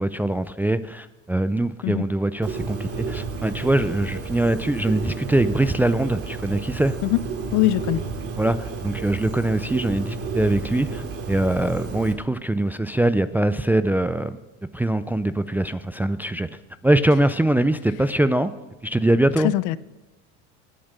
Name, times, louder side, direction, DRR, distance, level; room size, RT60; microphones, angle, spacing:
voice 1, 0.0-6.9 8.4-14.3 14.7-16.5 16.8-18.5 18.8-19.5, right 1 dB, 5° right, 11 dB, 0.4 m, -22 dB
Bird, 2.4-12.1, right 4 dB, 45° right, 2.5 m, -31 dB
voice 2, 7.5-8.0 19.4-19.8, left 15 dB, 60° left, 18 dB, 0.6 m, -21 dB
20.0 x 9.0 x 6.7 m, 1.1 s
supercardioid pair, 105°, 34 cm